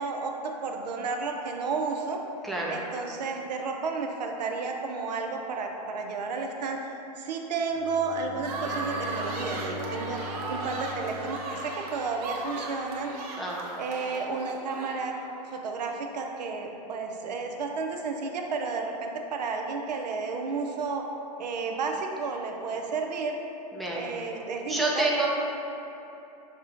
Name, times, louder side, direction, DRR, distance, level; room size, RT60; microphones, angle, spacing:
voice 1, 0.0-2.2 2.7-6.8 7.2-13.1 13.8-15.1 15.5-21.0 21.4-23.4 23.9-25.3, right 4 dB, 85° right, 3 dB, 0.5 m, -32 dB
voice 2, 2.4-2.8 13.4-13.6 23.7-24.1 24.7-25.3, right 2 dB, ahead, -4 dB, 0.4 m, -28 dB
Bowed string instrument, 7.7-12.5, equal, 20° right, 1.1 m, -41 dB
sound 1, 8.4-15.3, right 2 dB, 60° right, 0.8 m, -36 dB
6.0 x 2.1 x 3.7 m, 3.0 s
hypercardioid pair, 120°, 21 cm